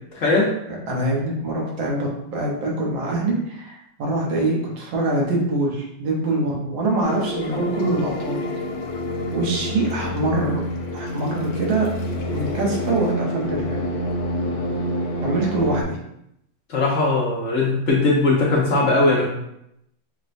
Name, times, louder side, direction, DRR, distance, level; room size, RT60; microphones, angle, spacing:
voice 1, 0.1-0.5 16.7-19.3, left 2 dB, 55° left, -5 dB, 0.8 m, -19 dB
voice 2, 0.9-8.4 9.3-10.6 10.9-11.9 12.3-13.8 15.2-16.0, right 2 dB, 70° right, -3 dB, 1.6 m, -24 dB
sound 1, 7.0-15.8, equal, 80° left, 1.4 m, -27 dB
6.2 x 2.2 x 2.5 m, 0.78 s
omnidirectional pair, 2.3 m